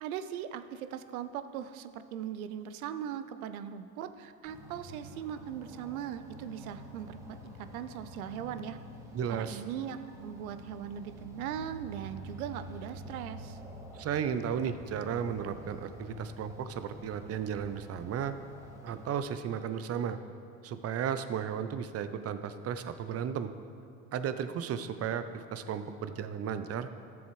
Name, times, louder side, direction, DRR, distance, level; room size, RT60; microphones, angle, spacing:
voice 1, 0.0-8.8 9.3-13.6, right 9 dB, 85° right, 11 dB, 0.6 m, -39 dB
sound 1, 4.4-19.1, equal, 5° right, 1.8 m, -48 dB
voice 2, 9.1-9.6 13.9-18.3 18.8-20.2 20.6-23.5 24.1-26.9, right 8 dB, 35° right, 11 dB, 0.6 m, -34 dB
13.5 x 7.1 x 3.2 m, 2.4 s
hypercardioid pair, 85°, 42 cm